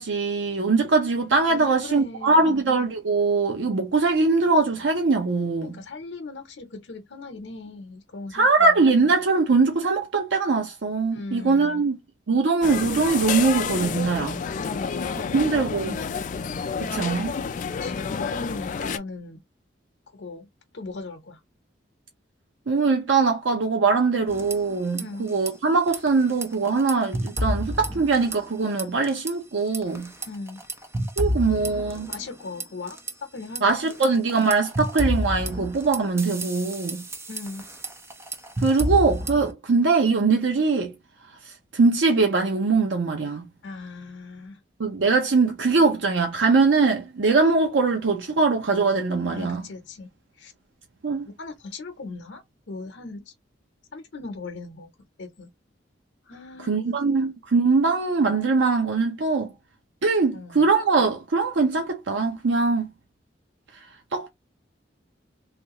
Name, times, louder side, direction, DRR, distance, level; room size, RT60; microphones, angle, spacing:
voice 1, 0.0-5.7 8.3-12.0 12.3-14.4 15.3-16.0 16.8-17.3 22.7-30.1 31.2-32.1 33.6-37.0 38.6-40.9 41.4-43.5 44.8-49.6 51.0-51.3 56.6-59.5 60.0-62.9 64.1-64.3, right 4 dB, 90° right, 0.6 m, -22 dB
voice 2, 1.5-2.6 5.6-9.1 11.1-11.8 14.6-15.4 17.8-19.4 20.1-20.5 20.7-21.4 25.0-25.3 30.3-30.6 32.1-33.8 37.3-37.7 43.6-44.6 49.3-50.1 50.4-50.5 51.2-53.3 53.9-54.9 55.2-55.5 56.3-56.8 60.3-60.7, left 3 dB, 85° left, 0.7 m, -38 dB
sound 1, 12.6-19.0, left 6 dB, 45° left, 0.3 m, -29 dB
sound 2, 24.3-25.0 25.3-25.5 25.9-28.5 28.8-29.3 29.7-33.1 33.6-39.5, equal, 15° right, 0.5 m, -30 dB
3.3 x 2.4 x 2.8 m
head